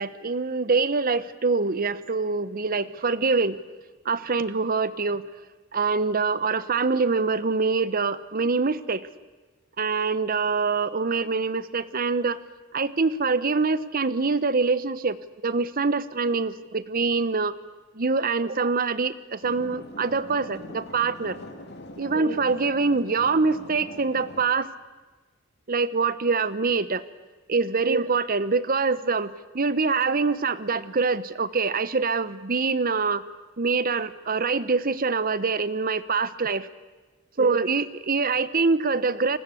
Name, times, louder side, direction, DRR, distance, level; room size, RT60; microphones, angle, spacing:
voice 1, 0.0-3.6 4.0-5.3 5.7-9.1 9.8-12.4 12.7-15.2 15.4-17.5 17.9-21.4 22.0-24.7 25.7-27.0 27.5-33.2 33.6-36.7 37.4-39.4, right 4 dB, 45° right, 16 dB, 0.9 m, -24 dB
sound 1, 19.4-24.4, left 1 dB, 55° left, 2.8 m, -42 dB
29.5 x 20.0 x 8.4 m, 1.3 s
head